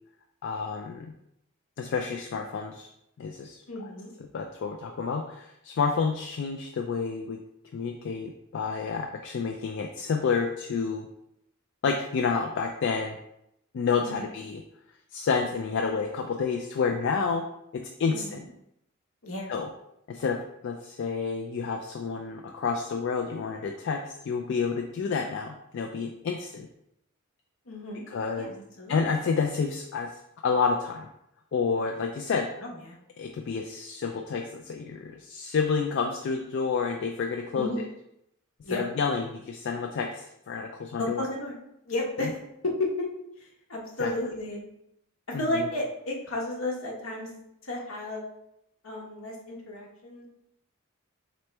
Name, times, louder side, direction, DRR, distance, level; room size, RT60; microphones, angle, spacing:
voice 1, 0.4-1.1 1.8-2.9 3.2-3.9 4.3-7.4 7.7-11.1 11.8-13.2 13.7-14.6 15.1-17.4 17.7-18.4 19.5-19.7 20.1-26.7 28.1-28.5 28.9-30.1 30.4-31.1 31.5-32.5 33.2-37.8 38.7-41.3 42.2-42.3 44.0-44.1 45.3-45.7, left 5 dB, 60° left, 3 dB, 0.3 m, -29 dB
voice 2, 3.7-4.1 14.0-14.3 18.1-18.5 19.2-19.5 27.7-28.1 28.3-29.2 32.6-33.0 37.6-37.8 38.6-38.8 41.0-41.6 41.9-42.4 42.6-43.1 43.4-44.6 45.4-47.3 47.6-48.2 48.8-50.3, left 1 dB, 75° left, -1 dB, 1.0 m, -33 dB
4.2 x 3.0 x 3.3 m, 0.80 s
head